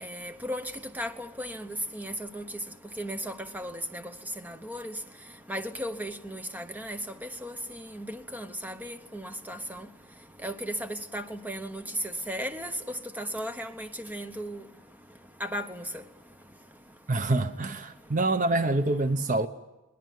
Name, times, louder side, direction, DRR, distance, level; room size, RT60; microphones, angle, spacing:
voice 1, 0.0-2.4 3.0-4.0 4.4-4.9 5.5-9.9 10.4-11.8 12.3-12.7 13.2-14.6 15.4-15.8, equal, 10° right, 8 dB, 1.0 m, -36 dB
voice 2, 17.1-19.5, right 2 dB, 35° right, 10 dB, 0.8 m, -26 dB
21.0 x 19.5 x 9.4 m, 1.1 s
head